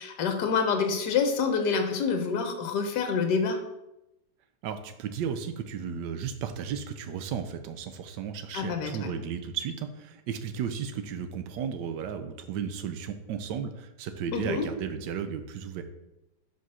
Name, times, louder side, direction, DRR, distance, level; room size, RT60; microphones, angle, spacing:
voice 1, 0.0-3.6 8.5-9.1 14.3-14.7, left 5 dB, 75° left, 5 dB, 1.4 m, -27 dB
voice 2, 4.6-15.8, right 7 dB, 85° right, 8 dB, 1.3 m, -34 dB
5.2 x 3.9 x 5.5 m, 0.92 s
omnidirectional pair, 1.9 m